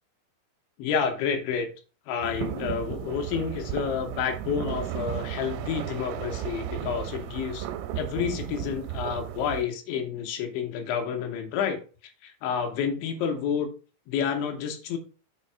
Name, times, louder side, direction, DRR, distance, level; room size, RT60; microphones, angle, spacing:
voice 1, 0.8-1.7 2.1-7.7 8.0-11.8 12.2-13.7 14.1-15.0, left 7 dB, 75° left, 5 dB, 3.1 m, -29 dB
sound 1, 2.2-9.6, right 11 dB, 85° right, 3.2 m, -34 dB
7.4 x 3.2 x 5.5 m, 0.35 s
omnidirectional pair, 5.8 m